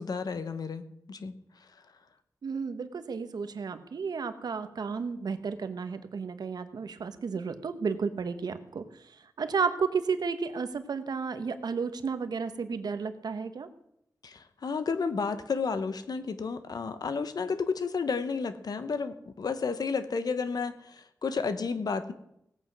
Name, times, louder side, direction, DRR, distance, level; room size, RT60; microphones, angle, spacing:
voice 1, 0.0-1.3 14.2-22.1, left 5 dB, 75° left, 11 dB, 1.1 m, -32 dB
voice 2, 2.4-8.8 9.4-13.7, right 5 dB, 85° right, 10 dB, 1.1 m, -32 dB
17.5 x 8.3 x 6.1 m, 0.78 s
wide cardioid pair, 90°, 7 cm